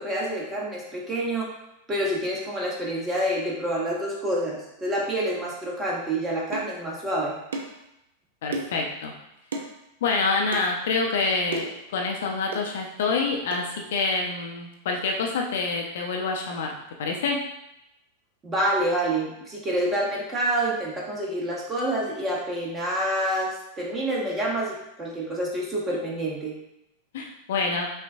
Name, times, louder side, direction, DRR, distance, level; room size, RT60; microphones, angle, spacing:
voice 1, 0.0-1.5 1.9-7.3 18.4-26.5, right 1 dB, 20° right, -3 dB, 1.1 m, -27 dB
sound 1, 6.5-6.7 7.5-7.8 8.5-8.8 9.5-9.7 10.5-10.7 11.5-11.8 12.5-12.7 13.5-13.7, right 2 dB, 65° right, 0.5 m, -32 dB
voice 2, 8.4-9.1 10.0-11.7 11.9-17.4 27.1-27.9, left 4 dB, 55° left, 1 dB, 0.5 m, -27 dB
5.5 x 2.2 x 2.6 m, 0.85 s
figure-of-eight pair, 90°, 0 cm